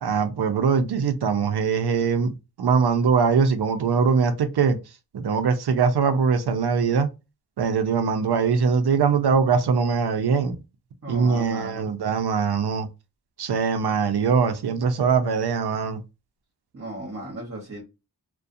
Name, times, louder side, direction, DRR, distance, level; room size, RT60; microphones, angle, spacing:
voice 1, 0.0-2.3 2.6-4.8 5.1-7.1 7.6-10.6 11.1-12.9 13.4-16.0, right 5 dB, 65° right, 0.6 m, -22 dB
voice 2, 11.0-11.9 16.7-17.8, right 1 dB, 35° right, 1.1 m, -35 dB
2.4 x 2.2 x 2.5 m
wide cardioid pair, 100°, 42 cm